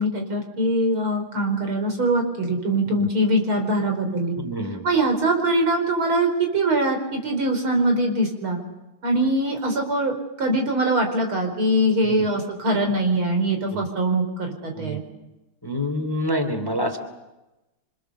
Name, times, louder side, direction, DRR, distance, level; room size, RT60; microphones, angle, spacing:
voice 1, 0.0-4.4 4.8-8.6 9.0-15.0, right 1 dB, 75° right, 3 dB, 5.5 m, -22 dB
voice 2, 4.4-4.8 12.0-12.2 13.7-13.8 14.7-15.0 15.6-17.0, equal, 10° left, 7 dB, 2.5 m, -27 dB
28.0 x 26.0 x 7.0 m, 1.0 s
omnidirectional pair, 2.3 m